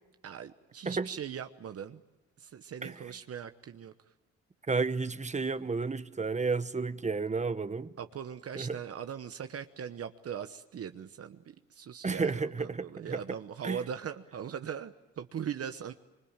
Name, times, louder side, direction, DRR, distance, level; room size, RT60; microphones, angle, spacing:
voice 1, 0.2-2.0 2.4-3.9 8.0-15.9, right 8 dB, 50° right, 1.1 m, -40 dB
voice 2, 4.7-7.9 8.5-8.7 12.0-13.2 13.6-13.8, right 4 dB, 25° right, 1.0 m, -32 dB
25.5 x 23.5 x 8.9 m
cardioid pair, 90°, 30 cm